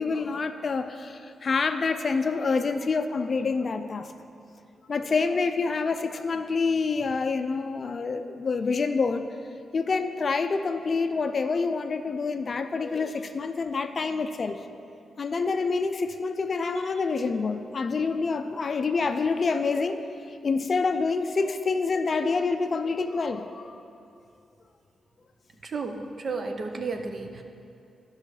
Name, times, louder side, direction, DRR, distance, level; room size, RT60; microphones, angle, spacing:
voice 1, 0.0-4.1 4.9-9.2 9.7-14.6 15.2-20.0 20.4-23.8, left 4 dB, 40° left, 8 dB, 0.4 m, -27 dB
voice 2, 25.6-27.4, right 4 dB, 45° right, 5 dB, 0.7 m, -33 dB
12.0 x 5.6 x 4.9 m, 2.5 s
cardioid pair, 110°, 0 cm